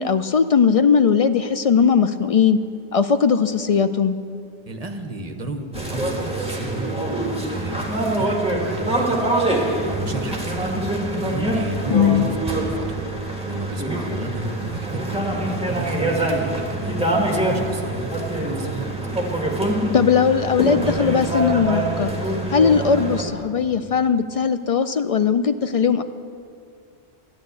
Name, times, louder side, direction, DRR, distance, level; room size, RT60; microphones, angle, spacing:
voice 1, 0.0-2.6 2.9-4.2 11.9-12.3 19.9-22.1 22.5-26.0, left 6 dB, 65° left, 10 dB, 0.3 m, -18 dB
voice 2, 4.7-6.9 7.4-9.4 10.0-13.1 13.3-18.1 18.4-18.9, right 2 dB, 35° right, 6 dB, 1.0 m, -33 dB
sound 1, 5.7-23.2, right 1 dB, 5° right, 1.8 m, -24 dB
12.5 x 10.5 x 8.0 m, 2.3 s
omnidirectional pair, 1.1 m